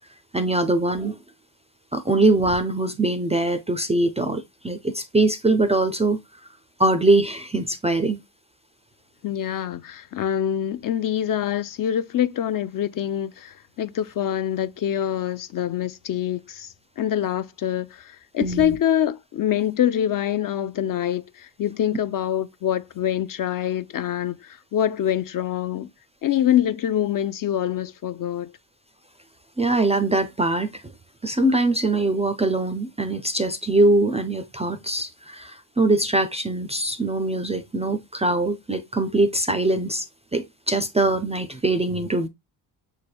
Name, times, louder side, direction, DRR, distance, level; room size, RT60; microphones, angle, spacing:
voice 1, 0.3-1.2 1.9-6.2 6.8-8.2 18.4-18.8 29.6-30.8 31.2-40.1 40.3-42.3, right 2 dB, 15° right, 0.3 m, -22 dB
voice 2, 9.2-25.9 26.2-28.5, left 10 dB, 50° left, 0.5 m, -25 dB
5.9 x 3.3 x 2.2 m
cardioid pair, 85°, 44 cm